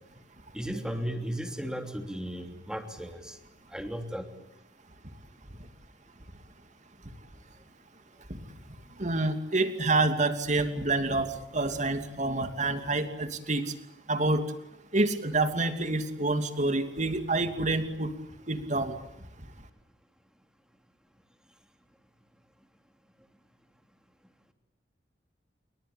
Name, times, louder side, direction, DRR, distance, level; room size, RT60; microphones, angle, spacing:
voice 1, 0.5-3.4 3.7-4.3, equal, 5° right, 6 dB, 3.2 m, -35 dB
voice 2, 9.0-13.6 14.1-14.4 14.9-18.1 18.5-19.0, right 2 dB, 45° right, 8 dB, 2.8 m, -27 dB
28.5 x 23.5 x 8.7 m, 0.79 s
head